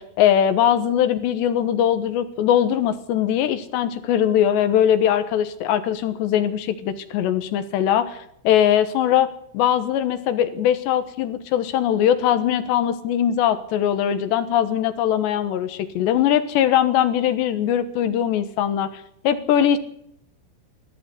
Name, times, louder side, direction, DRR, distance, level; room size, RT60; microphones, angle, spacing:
voice 1, 0.0-8.2 8.4-9.3 9.5-19.8, left 10 dB, 70° left, 12 dB, 3.1 m, -21 dB
20.0 x 14.0 x 9.5 m, 0.71 s
omnidirectional pair, 6.0 m